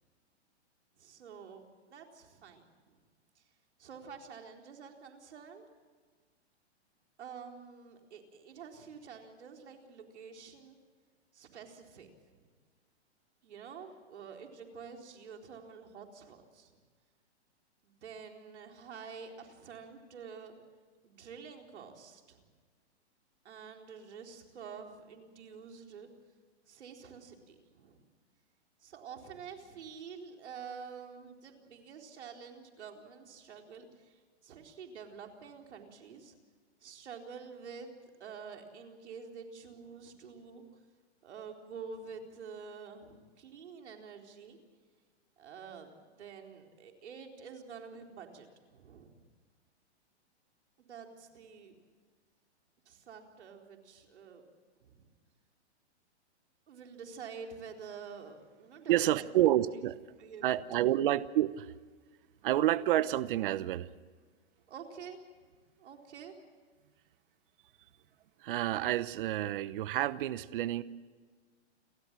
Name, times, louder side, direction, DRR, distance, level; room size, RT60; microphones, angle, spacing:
voice 1, 1.0-1.6 1.9-3.0 3.4-3.5 3.8-5.7 7.2-10.8 11.3-12.1 12.4-12.5 13.4-16.8 17.8-20.5 21.0-22.4 23.4-26.1 26.7-28.0 28.8-36.3 36.8-37.9 38.2-40.6 41.2-44.6 45.4-48.5 48.7-49.1 50.8-51.8 52.9-54.4 54.8-55.1 56.7-59.3 59.8-59.9 60.2-60.9 62.3-62.5 64.7-65.2 65.8-66.3, right 6 dB, 75° right, 3 dB, 4.2 m, -48 dB
voice 2, 58.9-60.0 60.4-61.7 62.4-63.9 68.4-70.8, right 13 dB, 50° right, 16 dB, 0.9 m, -29 dB
29.5 x 13.5 x 7.5 m, 1.5 s
hypercardioid pair, 150°, 34 cm